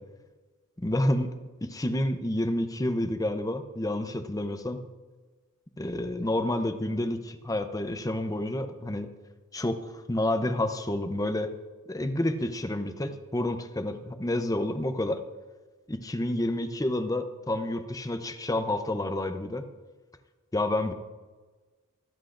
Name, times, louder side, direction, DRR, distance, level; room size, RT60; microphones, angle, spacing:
voice 1, 0.8-1.3 1.6-4.8 5.8-9.1 9.5-9.8 10.1-11.5 11.9-15.2 15.9-19.7 20.5-20.9, left 1 dB, 15° left, 8 dB, 0.7 m, -29 dB
24.5 x 8.2 x 2.6 m, 1.3 s
head